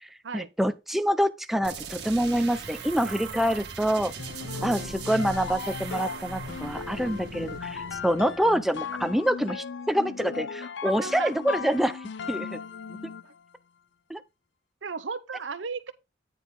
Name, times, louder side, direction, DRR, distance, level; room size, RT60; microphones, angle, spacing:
voice 1, 0.0-4.1 4.6-12.0 12.3-12.6 12.9-13.0 14.1-14.2, equal, ahead, 0.6 m, -26 dB
sound 1, 1.6-9.2, right 5 dB, 60° right, 1.6 m, -41 dB
voice 2, 3.0-3.7 4.4-5.2 8.1-8.4 10.8-11.3 13.2-13.3 14.8-15.9, right 5 dB, 85° right, 0.8 m, -37 dB
sound 2, 4.2-13.4, left 5 dB, 70° left, 0.5 m, -37 dB
9.3 x 4.0 x 5.3 m
head